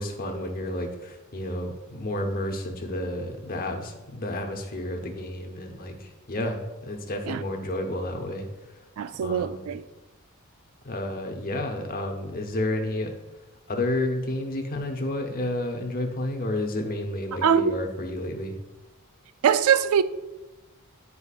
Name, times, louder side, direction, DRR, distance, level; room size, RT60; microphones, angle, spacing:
voice 1, 0.0-8.5 9.2-9.7 10.8-13.1 13.7-18.6, left 1 dB, 40° left, 0.8 m, -31 dB
voice 2, 9.0-9.8 17.4-17.8 19.4-20.0, right 7 dB, 70° right, 0.3 m, -22 dB
9.7 x 4.5 x 2.4 m
head